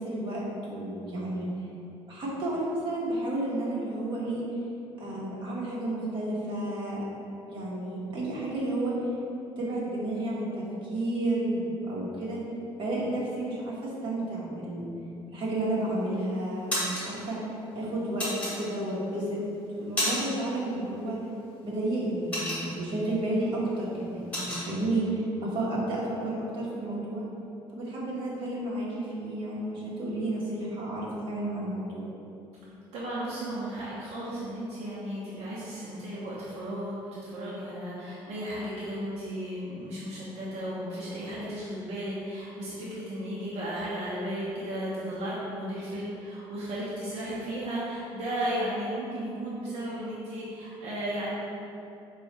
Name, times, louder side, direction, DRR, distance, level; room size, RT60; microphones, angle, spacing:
voice 1, 0.0-1.5 2.1-4.5 5.0-7.0 7.5-9.0 9.6-12.4 12.8-14.9 15.3-17.4 17.7-19.4 19.8-21.2 21.6-27.3 27.7-32.1, right 1 dB, 50° right, -6 dB, 1.2 m, -31 dB
sound 1, 15.6-16.1 16.4-17.1 18.2-19.0 19.5-20.5 20.7-21.0 21.4-23.0 23.4-23.6 23.9-24.7, left 1 dB, 10° left, 1.5 m, -31 dB
voice 2, 32.9-51.4, right 1 dB, 75° right, -8 dB, 0.8 m, -34 dB
4.6 x 2.4 x 4.2 m, 2.8 s
cardioid pair, 130°, 11 cm